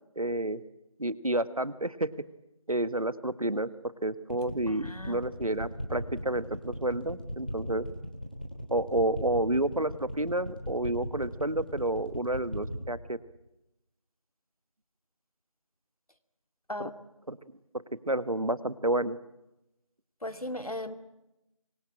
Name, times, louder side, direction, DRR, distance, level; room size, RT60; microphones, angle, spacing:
voice 1, 0.1-0.6 1.0-2.1 2.7-3.7 4.0-7.9 8.7-13.2 17.3-17.4 18.1-19.2, right 1 dB, 75° right, 15 dB, 1.6 m, -30 dB
sound 1, 4.3-12.8, equal, 15° left, 3.0 m, -37 dB
voice 2, 4.7-5.2 16.7-16.9 20.2-20.9, left 1 dB, 85° left, 10 dB, 2.6 m, -37 dB
25.0 x 23.0 x 8.8 m, 0.92 s
figure-of-eight pair, 180°, 18 cm